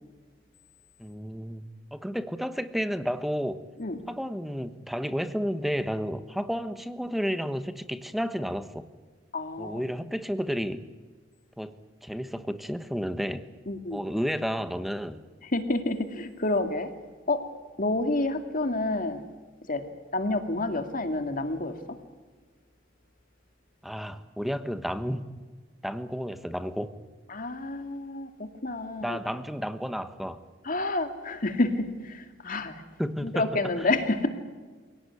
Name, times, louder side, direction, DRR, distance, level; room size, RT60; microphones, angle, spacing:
voice 1, 1.0-1.6 1.9-3.6 4.1-8.9 9.6-10.8 11.6-11.7 12.0-13.5 13.9-15.2 23.8-25.3 25.8-26.9 29.0-30.4 33.0-33.5 33.8-33.9, equal, ahead, 11 dB, 1.2 m, -31 dB
voice 2, 9.3-9.8 13.7-14.0 15.5-16.9 17.3-17.4 17.8-19.2 19.7-19.8 20.1-21.7 27.3-29.2 30.6-32.8 33.2-34.3, left 2 dB, 45° left, 7 dB, 2.3 m, -29 dB
25.0 x 18.0 x 9.7 m, 1.4 s
head